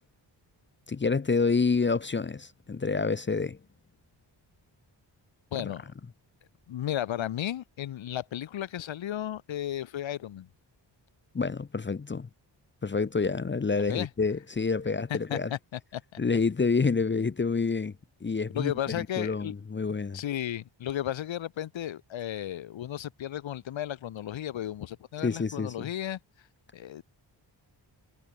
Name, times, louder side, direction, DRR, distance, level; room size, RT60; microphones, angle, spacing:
voice 1, 0.9-3.6 5.6-5.7 11.3-12.3 12.8-15.5 16.2-17.9 18.2-20.2 25.2-25.9, left 4 dB, 25° left, 0.9 m, -28 dB
voice 2, 5.5-5.8 6.7-10.5 13.7-14.1 15.1-16.0 18.5-19.5 20.1-26.2 26.7-27.0, left 11 dB, 90° left, 1.1 m, -34 dB
wide cardioid pair, 165°, 45 cm